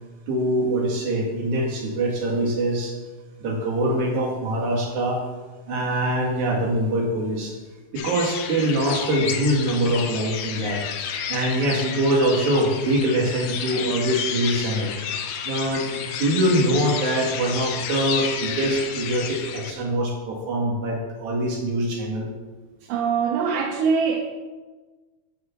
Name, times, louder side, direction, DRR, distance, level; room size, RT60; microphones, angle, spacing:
voice 1, 0.3-2.9 3.4-5.2 5.7-7.5 7.9-14.9 15.4-22.3, right 1 dB, 55° right, -3 dB, 2.9 m, -23 dB
sound 1, 8.0-19.7, left 7 dB, 75° left, 2.1 m, -31 dB
voice 2, 22.9-24.3, right 6 dB, 80° right, 2 dB, 2.0 m, -23 dB
7.8 x 5.3 x 7.2 m, 1.3 s
omnidirectional pair, 4.4 m